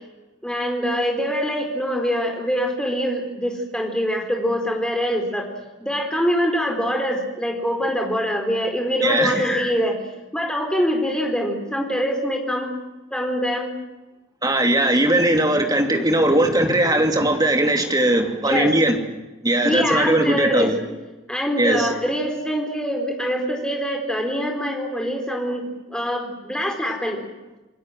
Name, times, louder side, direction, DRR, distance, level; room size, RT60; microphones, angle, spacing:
voice 1, 0.4-5.5 5.8-10.0 10.3-12.7 13.1-13.7 18.4-18.7 19.6-20.7 21.3-27.2, equal, 5° left, 2 dB, 4.4 m, -24 dB
voice 2, 9.0-9.4 14.4-19.0 19.4-20.8 21.6-21.9, right 1 dB, 20° right, 4 dB, 2.8 m, -19 dB
28.5 x 20.5 x 7.9 m, 1.1 s
head